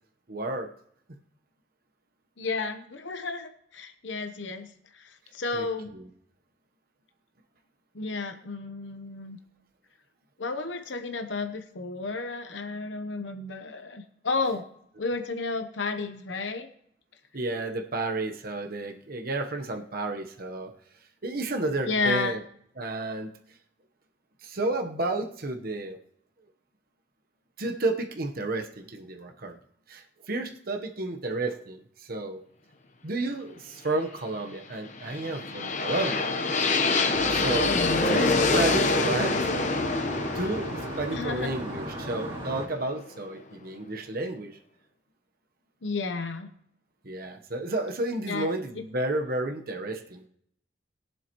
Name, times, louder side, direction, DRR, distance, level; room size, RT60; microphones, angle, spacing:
voice 1, 0.3-0.7 5.5-5.7 5.9-6.1 17.3-20.7 21.2-22.4 22.8-23.3 24.4-26.0 27.6-29.5 29.9-31.8 32.1-32.4 33.0-36.3 37.3-37.7 38.0-39.5 40.3-44.6 47.0-50.2, right 2 dB, 55° right, 4 dB, 1.1 m, -31 dB
voice 2, 2.4-4.7 5.3-5.9 7.9-9.4 10.4-14.6 15.0-16.7 21.9-22.3 37.7-38.3 41.1-41.5 45.8-46.5 48.3-48.5, left 4 dB, 75° left, 6 dB, 1.0 m, -32 dB
sound 1, 34.9-42.8, left 3 dB, 40° left, 1.0 m, -26 dB
sound 2, 37.1-42.7, equal, 30° right, 2.9 m, -35 dB
21.0 x 7.8 x 3.0 m, 0.71 s
head